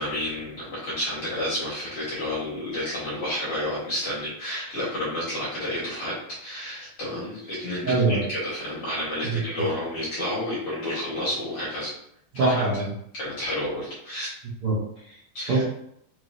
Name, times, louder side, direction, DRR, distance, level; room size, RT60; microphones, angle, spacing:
voice 1, 0.0-6.2 6.4-11.9 12.3-12.6 13.1-14.3 15.3-15.6, left 1 dB, 50° left, -8 dB, 1.8 m, -30 dB
voice 2, 7.8-8.2 9.2-9.4 12.3-12.9 14.6-15.2 15.5-15.6, right 3 dB, 65° right, -9 dB, 1.4 m, -23 dB
5.4 x 3.0 x 2.6 m, 0.72 s
omnidirectional pair, 4.2 m